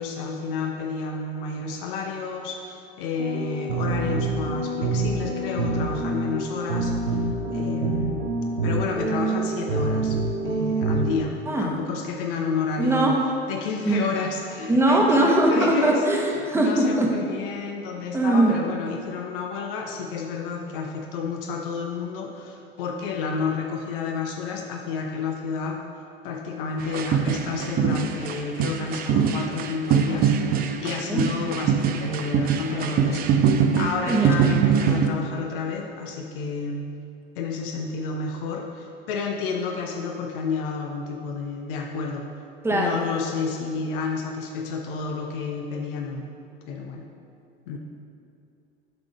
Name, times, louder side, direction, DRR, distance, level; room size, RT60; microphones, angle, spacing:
voice 1, 0.0-7.3 7.5-8.3 8.6-13.1 13.5-16.0 16.5-25.8 26.2-36.9 37.4-42.3 42.7-46.3 46.7-47.0 47.7-47.8, left 5 dB, 55° left, 2 dB, 0.6 m, -30 dB
sound 1, 3.2-11.2, right 2 dB, 75° right, 0.8 m, -26 dB
voice 2, 12.8-13.1 13.8-14.0 14.7-17.1 18.1-18.6 31.1-31.2 34.1-34.3 42.6-43.0, right 2 dB, 10° right, -1 dB, 1.0 m, -21 dB
sound 2, 26.8-35.1, right 7 dB, 30° right, 0.4 m, -23 dB
7.8 x 3.7 x 4.8 m, 2.5 s
figure-of-eight pair, 70°, 32 cm